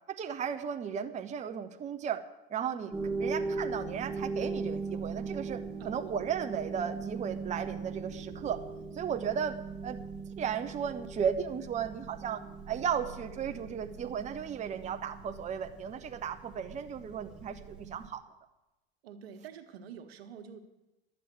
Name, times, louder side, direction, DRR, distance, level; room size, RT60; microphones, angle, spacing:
voice 1, 0.1-2.2 2.5-2.9 3.2-8.6 8.9-9.6 9.8-10.0 10.4-12.4 12.7-18.2, right 8 dB, 25° right, 7 dB, 0.8 m, -35 dB
sound 1, 2.9-18.1, right 4 dB, 5° right, 1.8 m, -40 dB
voice 2, 5.8-6.1 19.0-20.6, right 7 dB, 75° right, 6 dB, 1.6 m, -47 dB
11.5 x 7.7 x 9.3 m, 1.0 s
hypercardioid pair, 100°, 31 cm